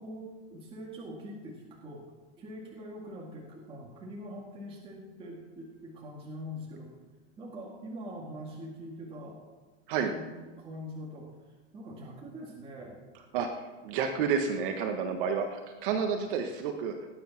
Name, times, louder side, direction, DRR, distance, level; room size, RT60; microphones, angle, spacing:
voice 1, 0.0-2.0 2.4-6.9 7.4-9.4 10.1-11.3 11.7-13.0, equal, 15° right, -3 dB, 2.0 m, -43 dB
voice 2, 13.3-16.9, right 6 dB, 45° right, 4 dB, 1.4 m, -30 dB
19.0 x 10.0 x 5.9 m, 1.2 s
supercardioid pair, 165°, 38 cm